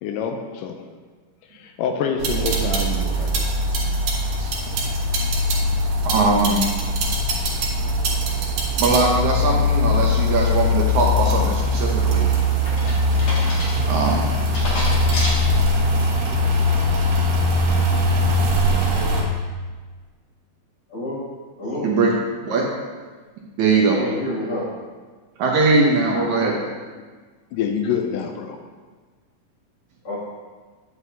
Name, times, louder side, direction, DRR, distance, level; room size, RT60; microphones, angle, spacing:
voice 1, 0.0-0.8 1.5-3.5 27.0-27.1 27.5-28.6, left 7 dB, 85° left, 5 dB, 2.2 m, -26 dB
sound 1, 2.2-19.2, left 1 dB, 85° right, 2.9 m, -21 dB
voice 2, 6.0-6.6 8.8-12.3 13.9-14.3 21.8-22.1 22.4-22.6 23.6-24.0 25.4-26.5, right 3 dB, 70° right, -1 dB, 2.0 m, -20 dB
sound 2, 11.8-16.0 16.5-16.9, left 1 dB, 65° left, 3.5 m, -31 dB
voice 3, 21.6-21.9 23.8-24.7 25.9-26.6 30.0-30.2, left 1 dB, 45° left, -8 dB, 3.1 m, -29 dB
9.4 x 8.1 x 2.8 m, 1.4 s
omnidirectional pair, 3.8 m